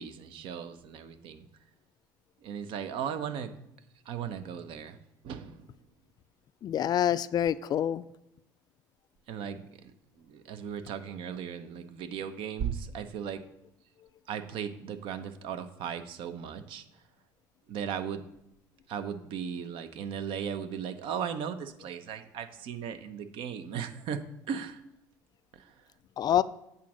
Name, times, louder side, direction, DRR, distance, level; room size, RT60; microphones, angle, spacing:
voice 1, 0.0-1.5 2.4-3.5 4.1-5.0 5.2-5.8 9.3-13.4 14.3-16.8 17.7-18.2 18.9-24.8 25.5-25.8, right 7 dB, 60° right, 10 dB, 0.7 m, -37 dB
voice 2, 6.6-8.0 26.2-26.4, left 10 dB, 40° left, 17 dB, 0.3 m, -26 dB
8.3 x 3.8 x 6.3 m, 0.84 s
hypercardioid pair, 65°, 10 cm